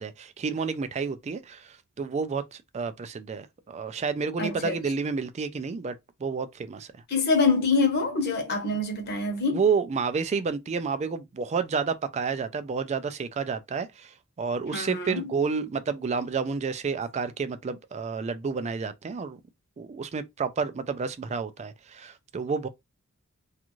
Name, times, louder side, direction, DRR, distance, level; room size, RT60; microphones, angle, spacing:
voice 1, 0.0-1.7 2.0-6.0 6.2-6.9 8.7-8.8 9.5-14.1 14.4-19.4 19.8-22.7, right 5 dB, 30° right, 0.3 m, -30 dB
voice 2, 4.4-4.8 7.1-9.6 14.7-15.3, left 3 dB, 45° left, 0.8 m, -25 dB
2.5 x 2.4 x 3.0 m
head